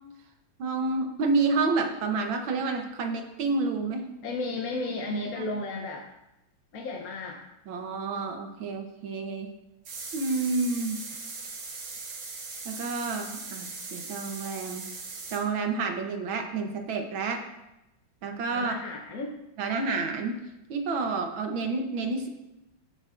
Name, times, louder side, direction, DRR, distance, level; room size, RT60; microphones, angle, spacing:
voice 1, 0.6-4.1 5.4-5.5 7.7-9.5 10.1-11.1 12.7-14.8 15.3-17.4 18.2-18.8 19.6-20.4 20.7-22.3, right 3 dB, 80° right, 5 dB, 1.8 m, -29 dB
voice 2, 4.2-6.1 6.7-7.4 18.5-19.4, left 2 dB, 55° left, 0 dB, 1.2 m, -33 dB
sound 1, 9.8-15.4, right 4 dB, 65° right, 1.9 m, -39 dB
15.5 x 6.7 x 2.5 m, 0.92 s
omnidirectional pair, 2.1 m